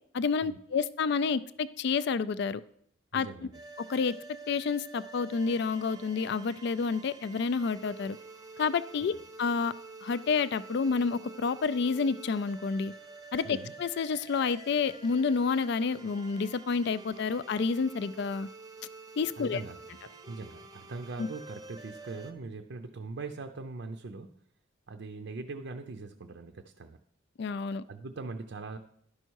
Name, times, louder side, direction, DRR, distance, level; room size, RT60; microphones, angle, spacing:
voice 1, 0.1-2.6 3.1-3.3 3.9-4.1 4.5-8.2 8.6-9.1 9.4-9.7 10.0-12.9 13.3-18.5 19.2-19.6 21.2-21.3 27.4-27.8, left 5 dB, 55° left, 16 dB, 0.3 m, -29 dB
voice 2, 3.1-3.5 13.4-13.7 19.4-19.8 20.3-24.4 24.9-27.0 27.9-28.8, right 3 dB, 55° right, 6 dB, 0.5 m, -41 dB
sound 1, 3.5-22.3, right 3 dB, 20° right, 0.7 m, -48 dB
11.5 x 5.5 x 4.6 m, 0.66 s
head